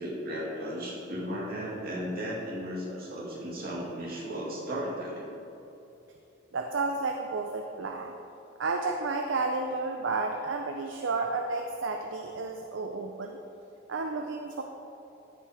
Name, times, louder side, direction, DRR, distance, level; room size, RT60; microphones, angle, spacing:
voice 1, 0.0-5.3, equal, 50° right, -5 dB, 2.5 m, -35 dB
voice 2, 6.5-8.1 8.6-13.4 13.9-14.6, right 3 dB, 65° right, 4 dB, 0.6 m, -31 dB
14.0 x 6.0 x 4.9 m, 2.9 s
head